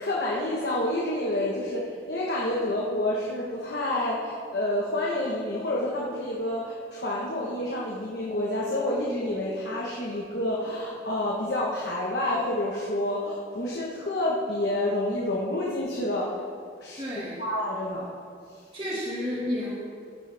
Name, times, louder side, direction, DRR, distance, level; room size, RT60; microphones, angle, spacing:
voice 1, 0.0-16.4 16.8-17.0 17.4-18.1, left 1 dB, 65° left, -4 dB, 1.4 m, -28 dB
voice 2, 17.0-17.4 18.7-19.8, left 1 dB, 30° right, -7 dB, 2.1 m, -31 dB
15.5 x 8.9 x 3.5 m, 2.3 s
head